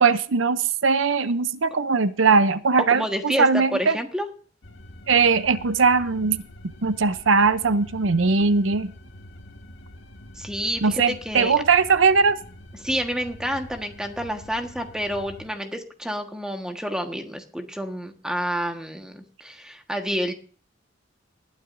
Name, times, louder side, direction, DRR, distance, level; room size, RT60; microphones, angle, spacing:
voice 1, 0.0-4.0 5.1-6.4 6.8-8.9 10.8-12.4, right 4 dB, 85° right, 13 dB, 0.7 m, -20 dB
voice 2, 2.9-4.3 10.4-11.5 12.8-20.3, equal, 5° right, 5 dB, 1.5 m, -29 dB
sound 1, 4.6-15.5, left 1 dB, 75° left, 1.8 m, -45 dB
19.5 x 12.5 x 2.7 m, 0.42 s
head